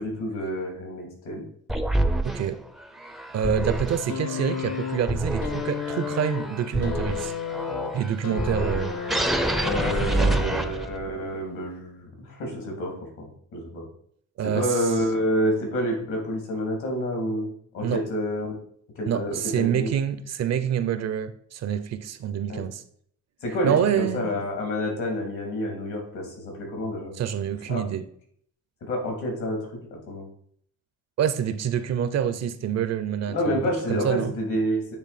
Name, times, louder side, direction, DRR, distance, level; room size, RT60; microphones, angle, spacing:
voice 1, 0.0-1.4 9.6-13.8 14.5-17.5 17.7-18.6 19.0-20.0 22.5-22.6 23.4-27.1 27.7-27.8 28.8-29.6 29.9-30.2 33.3-35.0, equal, 75° left, 2.8 m, -28 dB
sound 1, 1.7-11.1, right 1 dB, ahead, 0.5 m, -28 dB
voice 2, 2.2-2.6 3.3-7.3 7.9-8.9 10.0-10.5 14.4-14.7 17.8-18.0 19.1-22.8 23.6-24.3 27.2-28.0 31.2-33.6 33.9-34.3, right 9 dB, 60° right, 0.6 m, -27 dB
sound 2, 4.1-10.3 11.3-11.4, left 7 dB, 60° left, 0.6 m, -33 dB
8.4 x 3.3 x 4.1 m
cardioid pair, 90°, 30 cm